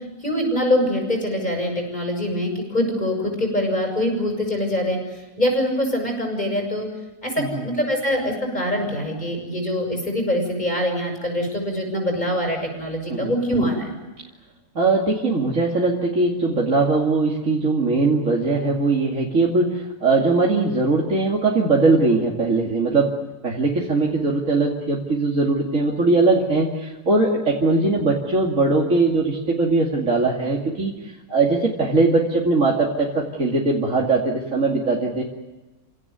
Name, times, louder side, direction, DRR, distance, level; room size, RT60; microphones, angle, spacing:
voice 1, 0.2-5.0 5.4-6.9 7.2-13.9, left 1 dB, 30° left, 2 dB, 7.2 m, -24 dB
voice 2, 14.7-23.1 23.4-35.2, right 3 dB, 55° right, -3 dB, 3.0 m, -20 dB
29.5 x 17.5 x 9.5 m, 1.1 s
omnidirectional pair, 1.6 m